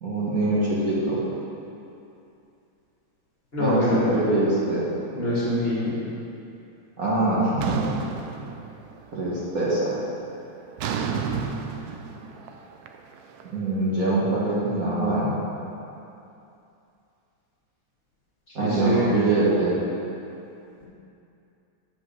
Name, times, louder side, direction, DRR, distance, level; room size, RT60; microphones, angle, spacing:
voice 1, 0.0-1.2 3.6-3.8 4.1-4.9 7.0-7.8 9.1-10.0 13.5-15.4 18.6-19.8, right 2 dB, 45° right, -8 dB, 1.7 m, -23 dB
voice 2, 3.5-4.1 5.1-6.0 18.5-19.1 20.8-20.9, left 1 dB, 30° left, -8 dB, 1.9 m, -25 dB
sound 1, 7.6-9.1 9.5-9.9 10.8-13.9, right 6 dB, 90° right, 0.8 m, -31 dB
7.7 x 5.3 x 6.8 m, 2.7 s
omnidirectional pair, 2.3 m